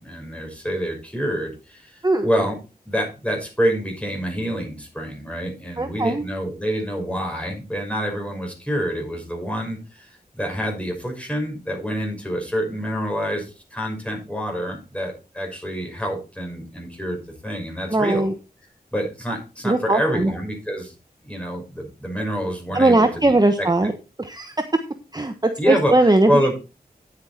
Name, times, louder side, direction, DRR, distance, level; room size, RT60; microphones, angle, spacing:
voice 1, 0.0-2.6 2.9-18.2 18.9-20.9 21.2-23.7 25.6-25.9 26.3-26.5, equal, 5° left, 1 dB, 5.9 m, -27 dB
voice 2, 5.8-6.2 17.9-18.3 19.6-20.3 22.7-23.9 24.2-24.5 25.1-26.3, right 2 dB, 25° right, 7 dB, 1.1 m, -19 dB
9.7 x 8.9 x 4.3 m, 0.31 s
wide cardioid pair, 55°, 16 cm